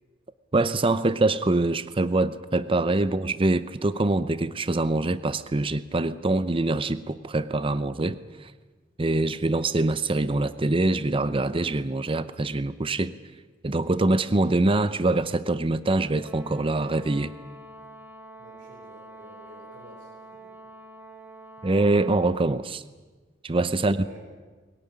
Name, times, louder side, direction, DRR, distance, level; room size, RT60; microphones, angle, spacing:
voice 1, 0.5-8.5 9.0-13.1 13.6-17.3 21.6-22.8 23.4-24.0, right 2 dB, 30° right, 13 dB, 0.6 m, -24 dB
Brass instrument, 16.1-22.5, right 1 dB, 10° right, 1.9 m, -46 dB
voice 2, 18.4-20.5 23.8-24.2, right 1 dB, 85° right, -2 dB, 5.4 m, -49 dB
22.0 x 17.5 x 10.0 m, 1.3 s
head